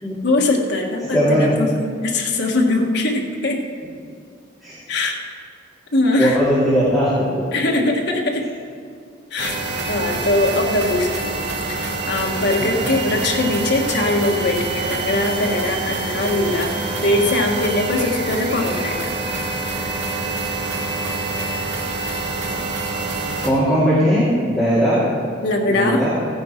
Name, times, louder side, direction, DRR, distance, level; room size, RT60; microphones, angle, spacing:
voice 1, 0.2-3.6 4.9-5.2 5.9-6.4 7.5-8.5 9.3-9.6 9.8-11.4 11.8-19.0 25.4-26.0, left 2 dB, 60° left, 0 dB, 1.6 m, -21 dB
voice 2, 1.1-1.5 4.6-4.8 6.2-7.1 12.6-12.9 23.4-25.0 25.7-26.2, equal, ahead, -12 dB, 2.6 m, -18 dB
sound 1, 9.4-23.5, right 3 dB, 65° right, 1.9 m, -26 dB
16.0 x 9.6 x 4.5 m, 2.2 s
head